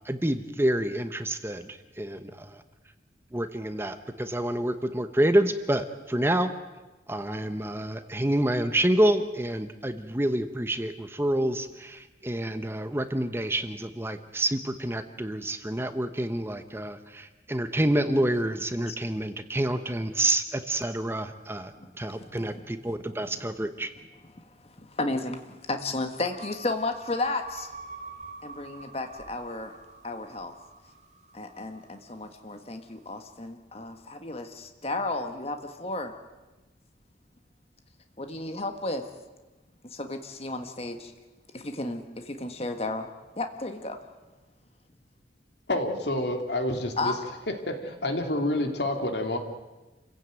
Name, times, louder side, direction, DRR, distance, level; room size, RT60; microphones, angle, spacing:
voice 1, 0.0-2.6 3.3-6.5 7.1-23.9, right 1 dB, 15° right, 9 dB, 1.0 m, -28 dB
voice 2, 21.7-23.2 24.3-27.7 28.4-29.8 30.0-30.5 31.3-36.1 38.2-39.1 39.8-41.1 41.5-43.1 43.4-44.0 47.0-47.2, left 2 dB, 35° left, 6 dB, 1.6 m, -33 dB
Raetis ping, 26.3-32.7, right 3 dB, 40° right, 2.7 m, -46 dB
voice 3, 45.7-47.1 47.5-49.4, left 1 dB, 70° left, 5 dB, 2.8 m, -28 dB
28.5 x 16.0 x 9.2 m, 1.2 s
head